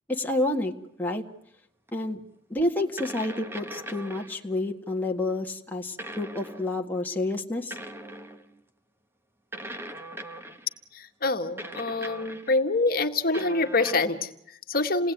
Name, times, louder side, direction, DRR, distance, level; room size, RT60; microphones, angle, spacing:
voice 1, 0.1-0.7 1.0-1.2 1.9-2.2 2.5-7.8, left 2 dB, 10° left, 1 dB, 1.8 m, -29 dB
sound 1, 1.9-2.0 3.0-4.4 6.0-6.8 7.7-8.6 9.5-10.7 11.6-12.6 13.3-14.0, right 1 dB, 10° right, 1.3 m, -40 dB
voice 2, 10.9-15.1, left 3 dB, 50° left, 6 dB, 1.8 m, -26 dB
29.0 x 19.0 x 9.3 m, 0.77 s
head